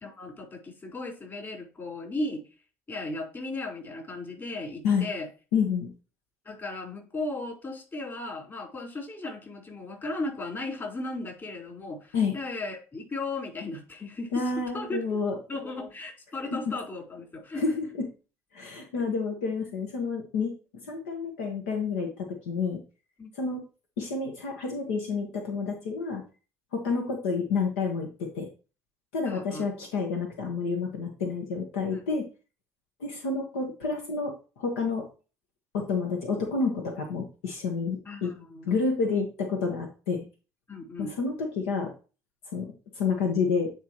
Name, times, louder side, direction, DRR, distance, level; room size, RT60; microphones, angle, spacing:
voice 1, 0.0-2.4 2.9-5.3 6.4-14.3 14.7-15.2 15.5-17.6 23.2-23.3 29.3-29.6 31.9-32.0 38.0-38.7 40.7-41.2, left 2 dB, 35° left, 0 dB, 4.4 m, -36 dB
voice 2, 5.5-5.9 12.1-12.3 14.3-15.4 17.6-18.0 18.5-20.5 20.8-22.8 23.3-23.6 24.0-26.2 26.7-28.5 29.1-32.3 33.0-35.1 35.7-38.3 38.7-40.3 41.0-41.9 42.5-43.7, left 4 dB, 85° left, 2 dB, 1.3 m, -29 dB
9.4 x 4.6 x 3.1 m, 0.33 s
hypercardioid pair, 70°, 7 cm